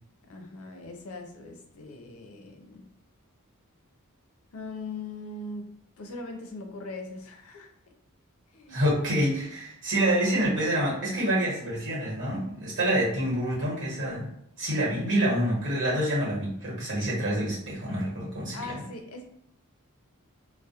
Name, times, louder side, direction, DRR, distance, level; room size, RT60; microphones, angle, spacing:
voice 1, 0.3-2.9 4.5-5.7 6.0-7.7 8.5-8.8 18.5-19.2, left 2 dB, 70° left, 4 dB, 0.5 m, -40 dB
voice 2, 8.7-14.3 14.6-18.6, right 1 dB, 55° right, -5 dB, 1.1 m, -27 dB
2.2 x 2.1 x 2.8 m, 0.75 s
head